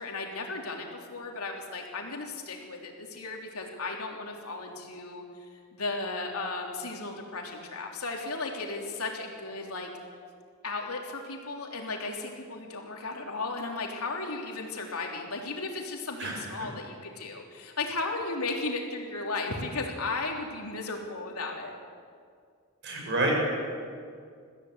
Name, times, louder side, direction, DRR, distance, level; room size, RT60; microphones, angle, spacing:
voice 1, 0.0-9.9 10.6-21.8, left 3 dB, 90° left, 0 dB, 3.5 m, -35 dB
voice 2, 16.2-16.5 22.8-23.4, right 2 dB, 55° right, -1 dB, 6.8 m, -28 dB
22.5 x 15.0 x 8.2 m, 2.1 s
head